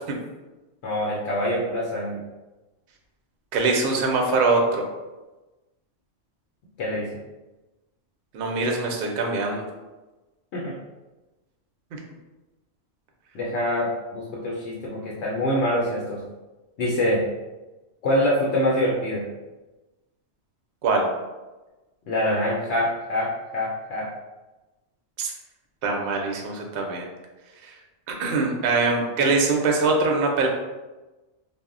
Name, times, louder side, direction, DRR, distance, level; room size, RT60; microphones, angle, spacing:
voice 1, 0.8-2.2 6.8-7.1 10.5-10.7 13.3-16.2 16.8-17.2 18.0-19.2 22.1-24.1, left 1 dB, 70° left, -4 dB, 0.8 m, -25 dB
voice 2, 3.5-4.8 8.3-9.6 20.8-21.1 25.2-25.3 25.8-27.1 27.6-27.7 28.1-30.5, right 3 dB, 60° right, 1 dB, 0.6 m, -23 dB
2.1 x 2.0 x 3.6 m, 1.1 s
omnidirectional pair, 1.3 m